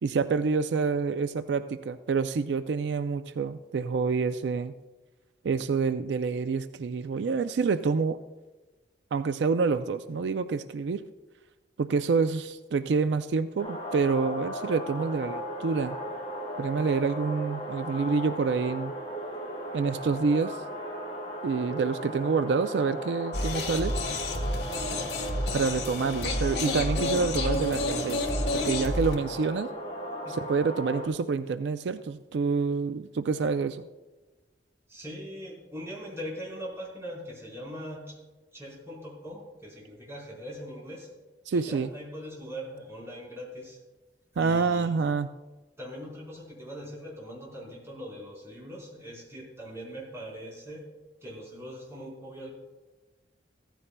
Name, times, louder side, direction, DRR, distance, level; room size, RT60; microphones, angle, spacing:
voice 1, 0.0-4.7 5.4-8.2 9.1-11.0 11.8-16.0 16.6-18.9 19.7-20.6 21.4-23.9 25.5-28.2 28.5-29.7 30.3-33.8 41.5-41.9 44.4-45.3, right 4 dB, 80° right, 11 dB, 0.4 m, -27 dB
sound 1, 13.6-31.1, equal, 35° left, 3.9 m, -37 dB
sound 2, 23.3-29.2, left 1 dB, 70° left, 1.4 m, -30 dB
voice 2, 34.9-38.2 38.5-41.1 41.5-43.8 44.3-45.0 45.8-50.9 51.2-52.5, equal, 15° right, -5 dB, 4.2 m, -41 dB
15.0 x 14.0 x 2.2 m, 1.2 s
head